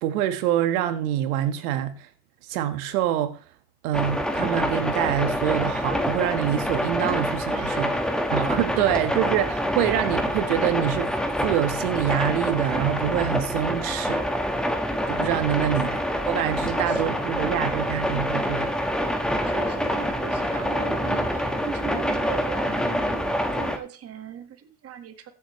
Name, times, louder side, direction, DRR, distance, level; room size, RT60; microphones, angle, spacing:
voice 1, 0.0-2.1 2.4-3.4 3.8-7.9 8.3-11.1 11.4-14.3 15.1-18.7, right 11 dB, 70° right, 1.6 m, -26 dB
sound 1, 3.9-23.8, equal, ahead, 1.5 m, -26 dB
voice 2, 7.5-8.3 8.7-8.9 16.7-17.0 17.3-18.0 19.4-25.3, right 9 dB, 30° right, 1.7 m, -39 dB
15.0 x 7.6 x 3.2 m
hypercardioid pair, 105°, 45 cm